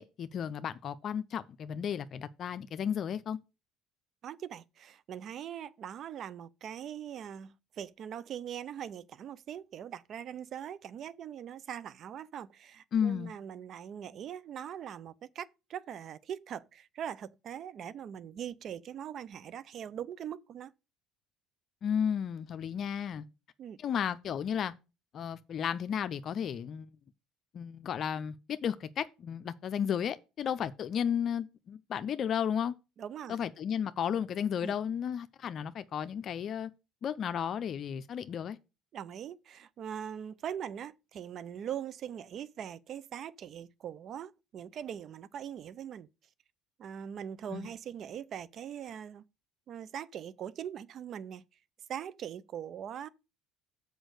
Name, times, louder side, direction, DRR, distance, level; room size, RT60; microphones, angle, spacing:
voice 1, 0.0-3.4 12.9-13.3 21.8-23.2 23.8-24.7 25.1-26.9 27.5-32.7 33.3-36.7 37.0-38.6 47.5-47.7, left 8 dB, 50° left, 0.5 m, -33 dB
voice 2, 4.2-20.7 23.6-23.8 33.0-33.4 34.6-34.8 38.9-46.1 46.8-49.2 49.7-51.4 51.9-53.1, right 9 dB, 55° right, 0.5 m, -41 dB
6.2 x 5.2 x 6.4 m
supercardioid pair, 85°, 0 cm